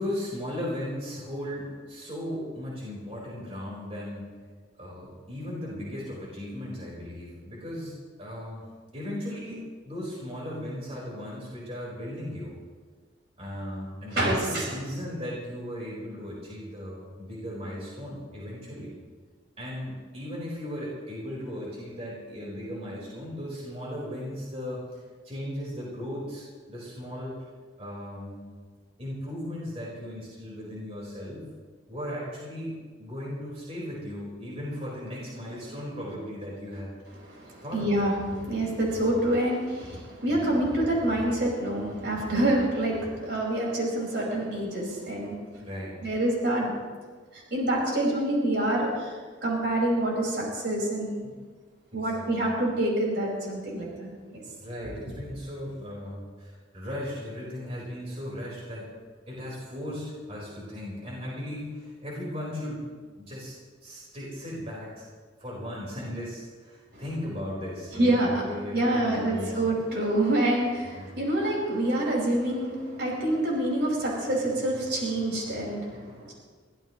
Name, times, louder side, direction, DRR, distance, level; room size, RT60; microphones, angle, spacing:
voice 1, 0.0-4.3 4.7-8.7 8.9-12.6 13.4-18.9 19.6-27.4 27.8-28.5 29.0-31.5 31.9-36.9 37.6-37.9 40.3-40.5 45.6-46.0 51.2-51.5 51.9-52.5 54.6-58.9 59.3-62.9 63.2-63.5 63.8-65.0 65.4-69.8 70.8-71.2, left 1 dB, 35° right, -5 dB, 4.4 m, -37 dB
voice 2, 14.1-14.7 37.3-45.6 46.0-46.7 47.3-51.2 51.9-54.1 54.3-54.4 66.9-67.0 67.9-68.4 68.7-76.3, right 1 dB, 60° right, -3 dB, 5.1 m, -27 dB
23.5 x 16.0 x 3.1 m, 1.5 s
head